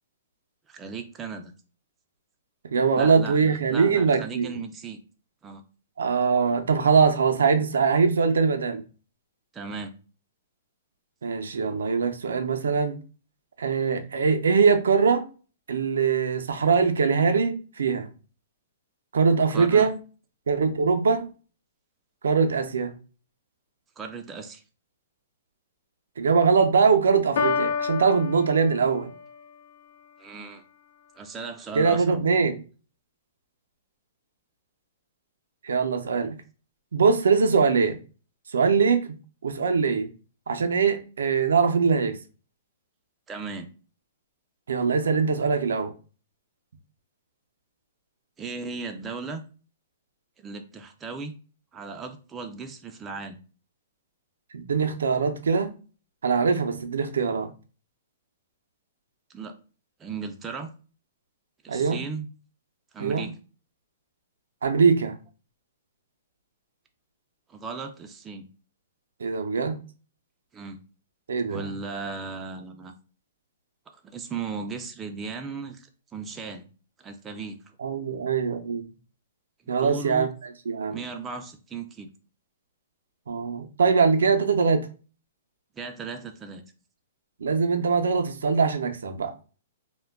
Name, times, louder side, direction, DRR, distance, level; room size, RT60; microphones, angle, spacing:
voice 1, 0.7-1.5 2.9-5.0 5.4-5.6 9.5-9.9 19.5-19.9 24.0-24.6 30.2-30.6 31.2-32.3 43.3-43.7 48.4-49.4 50.4-51.3 51.7-53.4 59.3-59.6 60.0-60.7 61.6-62.3 62.9-63.3 67.5-68.5 70.5-70.8 71.5-72.9 74.0-76.7 77.0-77.6 79.8-80.3 80.9-82.1 85.8-86.6, right 5 dB, 15° right, 0.3 m, -36 dB
voice 2, 2.7-4.5 6.0-8.8 11.2-13.0 13.6-15.3 15.7-18.1 19.1-19.9 20.5-21.3 22.2-22.9 26.2-29.1 31.7-32.6 35.6-36.4 36.9-38.0 38.5-39.1 39.4-40.1 40.5-42.2 44.7-45.9 54.5-55.7 56.2-57.5 61.7-62.0 63.0-63.3 64.6-65.2 69.2-69.8 71.3-71.7 77.8-78.9 79.7-81.0 83.3-84.9 87.4-89.3, right 5 dB, 85° right, 0.4 m, -22 dB
Piano, 27.4-29.3, left 5 dB, 70° left, 0.4 m, -28 dB
2.2 x 2.1 x 3.4 m
hypercardioid pair, 145°, 0 cm